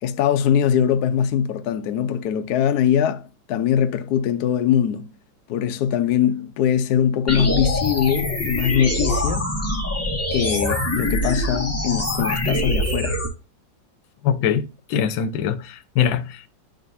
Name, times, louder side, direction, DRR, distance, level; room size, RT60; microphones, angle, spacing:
voice 1, 0.0-5.1 5.5-9.4 10.3-13.2, left 9 dB, 70° left, 1.0 m, -22 dB
sound 1, 7.3-13.3, left 1 dB, 10° left, 1.4 m, -24 dB
voice 2, 14.2-16.5, left 8 dB, 85° left, 1.5 m, -23 dB
10.5 x 3.8 x 2.6 m
omnidirectional pair, 2.1 m